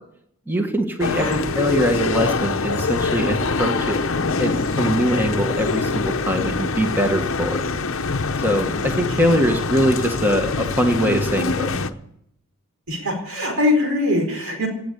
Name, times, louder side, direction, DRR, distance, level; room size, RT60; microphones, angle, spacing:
voice 1, 0.5-4.0 4.4-7.6 8.4-11.7, equal, 10° right, 4 dB, 1.5 m, -22 dB
sound 1, 1.0-11.9, left 4 dB, 70° left, 0.9 m, -24 dB
voice 2, 1.1-1.5 9.1-9.6 12.9-14.7, left 2 dB, 85° right, 3 dB, 4.6 m, -23 dB
17.5 x 7.9 x 8.4 m, 0.75 s
head